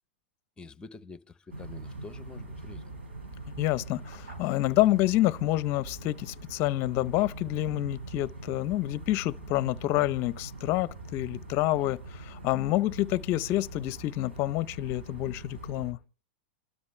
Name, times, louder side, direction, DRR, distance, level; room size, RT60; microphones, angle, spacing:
voice 1, 0.6-2.8, left 4 dB, 15° left, 0.9 m, -47 dB
sound 1, 1.5-15.9, right 2 dB, 90° right, 4.3 m, -43 dB
voice 2, 3.6-16.0, left 16 dB, 45° left, 0.6 m, -28 dB
sound 2, 4.3-13.4, right 2 dB, 60° right, 6.1 m, -60 dB
28.0 x 12.5 x 3.3 m
hypercardioid pair, 110°, 6 cm